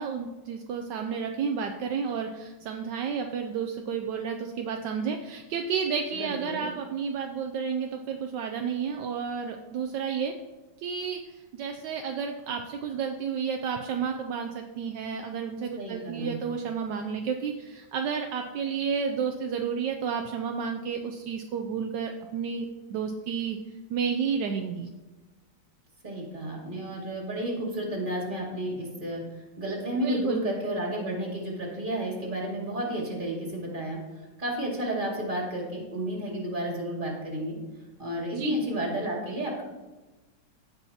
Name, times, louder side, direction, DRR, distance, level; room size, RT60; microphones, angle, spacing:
voice 1, 0.0-10.3 10.8-23.6 23.9-24.9 30.0-30.4 38.3-38.6, right 6 dB, 75° right, 4 dB, 1.2 m, -31 dB
voice 2, 6.1-6.7 15.8-16.4 26.0-34.0 34.4-37.6 38.0-39.6, right 1 dB, 25° right, -3 dB, 2.4 m, -32 dB
16.0 x 5.5 x 2.8 m, 1.1 s
omnidirectional pair, 2.0 m